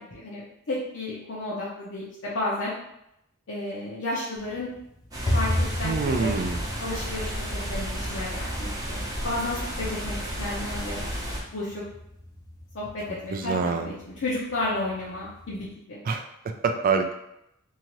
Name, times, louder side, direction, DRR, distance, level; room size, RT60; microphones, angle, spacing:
voice 1, 0.0-2.7 3.5-4.7 5.2-6.3 6.8-11.0 11.5-11.8 12.7-16.0, left 2 dB, 65° left, -7 dB, 0.7 m, -32 dB
sound 1, 4.4-15.7, left 1 dB, 20° left, 0.5 m, -35 dB
sound 2, 5.1-11.4, equal, 15° right, 0.7 m, -32 dB
voice 2, 5.8-6.6 13.3-13.9 16.0-17.2, right 5 dB, 40° right, 5 dB, 0.3 m, -26 dB
2.8 x 2.4 x 3.0 m, 0.80 s
head